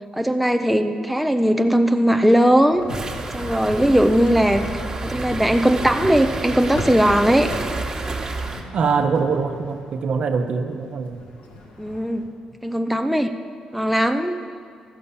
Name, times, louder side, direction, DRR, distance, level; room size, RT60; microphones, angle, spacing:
voice 1, 0.1-2.8 3.3-4.7 5.0-7.5 11.8-12.3 12.6-13.4 13.7-14.4, equal, ahead, 6 dB, 0.5 m, -19 dB
sound 1, 2.7-12.3, left 1 dB, 90° left, 1.7 m, -38 dB
sound 2, 2.9-8.6, right 3 dB, 30° right, 1.3 m, -30 dB
voice 2, 8.7-11.2, right 5 dB, 60° right, 5 dB, 0.9 m, -23 dB
14.0 x 5.4 x 7.1 m, 2.1 s
cardioid pair, 90°, 2 cm